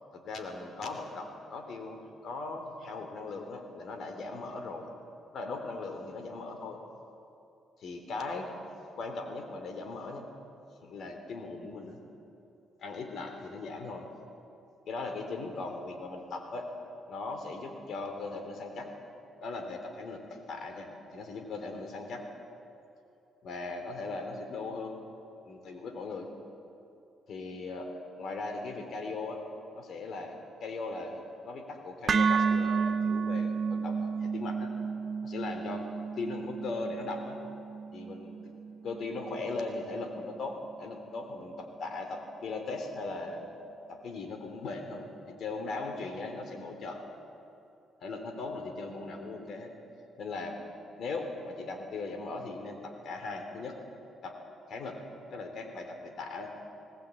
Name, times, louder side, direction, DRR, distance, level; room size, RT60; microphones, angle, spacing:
voice 1, 0.1-4.9 5.3-6.8 7.8-8.5 9.0-10.3 10.8-12.0 12.8-14.1 14.9-16.7 17.1-18.9 19.4-22.2 23.4-25.0 25.4-26.3 27.3-27.9 28.2-29.4 29.7-34.7 35.2-35.8 36.2-37.4 37.9-38.4 38.8-43.5 43.9-47.0 48.0-49.7 50.2-50.6 51.0-53.8 54.2-54.4 54.7-55.0 55.3-56.5, left 3 dB, 65° left, 5 dB, 3.4 m, -39 dB
sound 1, 32.1-40.2, right 5 dB, 45° right, 0.9 m, -32 dB
21.0 x 18.5 x 8.5 m, 2.8 s
cardioid pair, 90°, 0 cm